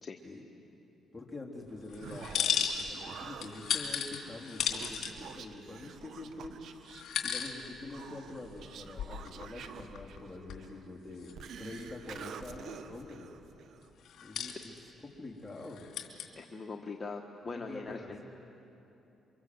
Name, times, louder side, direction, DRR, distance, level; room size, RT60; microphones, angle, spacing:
voice 1, 1.1-6.8 7.2-13.3 14.2-15.9 17.5-18.3, left 2 dB, 10° left, -1 dB, 3.8 m, -46 dB
Human voice, 1.7-13.9, right 7 dB, 70° right, 1.3 m, -49 dB
sound 1, 1.9-3.1 3.4-5.1 5.8-5.9 6.9-7.5 7.9-8.0 8.6-10.2 10.5-10.6 11.2-11.3 11.6-12.2 14.1-14.8 15.6-16.3, left 8 dB, 65° left, 3.0 m, -35 dB
voice 2, 16.4-18.2, left 4 dB, 30° left, 3 dB, 1.3 m, -41 dB
28.5 x 24.5 x 7.9 m, 3.0 s
cardioid pair, 90°, 0 cm